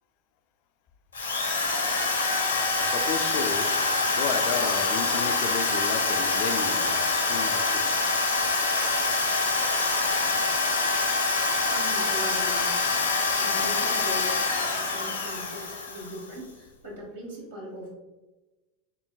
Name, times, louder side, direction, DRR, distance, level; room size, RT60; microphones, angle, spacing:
Drill, 1.1-16.3, left 3 dB, 80° left, 0.8 m, -25 dB
voice 1, 2.8-3.7 4.1-8.1, left 6 dB, 50° left, 7 dB, 0.4 m, -33 dB
voice 2, 11.4-12.8 13.4-18.0, equal, 75° right, -4 dB, 1.2 m, -40 dB
5.9 x 3.7 x 2.2 m, 1.1 s
figure-of-eight pair, 80°, 0 cm